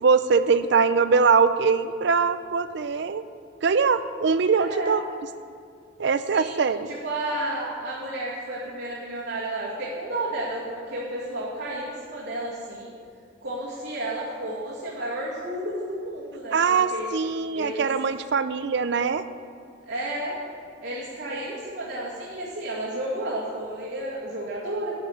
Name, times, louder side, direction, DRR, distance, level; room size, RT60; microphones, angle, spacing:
voice 1, 0.0-3.2 3.6-5.0 6.0-6.9 16.5-19.2, right 5 dB, 60° right, 12 dB, 0.5 m, -22 dB
voice 2, 4.6-5.0 6.3-6.6 6.9-12.9 13.4-17.1 17.5-17.9 19.9-20.4 20.8-24.9, right 1 dB, 85° right, -8 dB, 2.2 m, -32 dB
11.0 x 5.6 x 8.6 m, 2.3 s
head